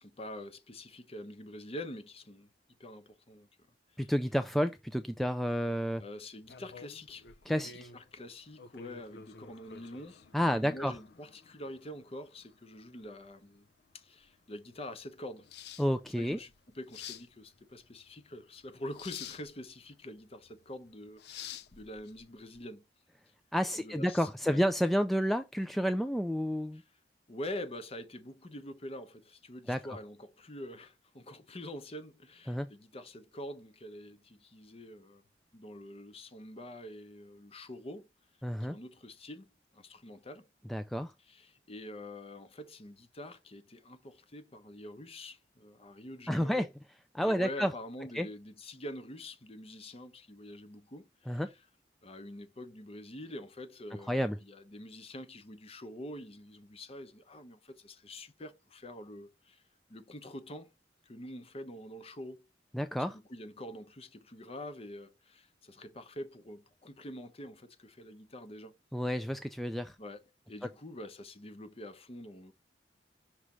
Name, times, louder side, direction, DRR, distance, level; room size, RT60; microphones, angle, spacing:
voice 1, 0.0-2.5 2.8-3.5 4.0-4.1 6.0-7.3 7.7-13.7 13.9-15.5 16.2-22.8 23.8-24.6 26.7-26.8 27.3-35.2 35.5-38.1 38.6-40.5 41.3-46.7 47.2-51.4 52.0-59.6 59.9-60.7 61.0-62.5 63.1-68.8 70.0-72.5, left 1 dB, 35° left, 0.8 m, -46 dB
voice 2, 4.0-6.0 7.5-7.9 10.3-10.9 15.8-16.4 23.5-26.8 29.7-29.8 32.5-32.7 38.4-38.8 40.7-41.1 46.3-46.7 47.1-47.7 48.1-48.3 51.3-51.5 54.1-54.4 62.7-63.2 68.9-70.0, equal, ahead, 0.3 m, -30 dB
sound 1, 6.4-22.6, left 8 dB, 65° left, 0.5 m, -51 dB
6.1 x 3.2 x 5.4 m
head